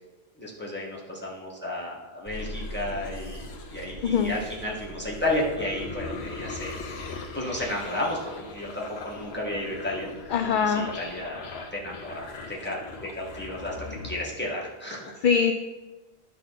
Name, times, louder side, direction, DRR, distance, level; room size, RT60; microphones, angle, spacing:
voice 1, 0.4-10.1 10.6-15.1, left 1 dB, 10° left, -5 dB, 1.7 m, -33 dB
sound 1, 2.3-14.2, left 3 dB, 75° left, 1.1 m, -39 dB
voice 2, 4.0-4.4 10.3-10.9 15.2-15.5, left 6 dB, 60° left, 7 dB, 0.6 m, -22 dB
10.5 x 5.8 x 4.1 m, 1.2 s
omnidirectional pair, 1.1 m